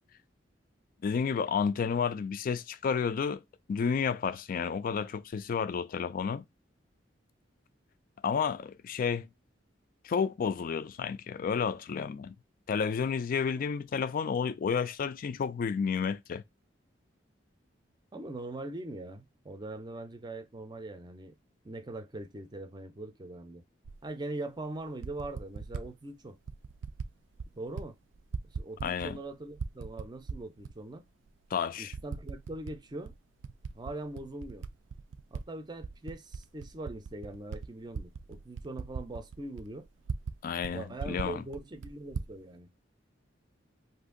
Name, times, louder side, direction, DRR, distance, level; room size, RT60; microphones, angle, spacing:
voice 1, 1.0-3.4 3.7-6.4 8.2-9.3 10.0-12.3 12.7-16.4 28.8-29.2 31.5-31.9 40.4-41.4, left 6 dB, 50° left, 0.3 m, -31 dB
voice 2, 18.1-21.3 21.6-23.6 24.0-26.4 27.5-28.0 28.5-31.0 31.8-33.1 33.7-34.7 35.3-39.9 40.7-42.7, right 2 dB, 25° right, 0.5 m, -41 dB
Typing, 23.8-24.0 24.8-25.9 26.5-27.1 27.4-27.9 28.1-29.2 29.5-30.7 31.3-31.4 31.9-32.8 33.1-35.4 35.8-40.4 40.6-40.7 41.0-42.3, right 5 dB, 85° right, 0.4 m, -39 dB
2.7 x 2.5 x 3.7 m
head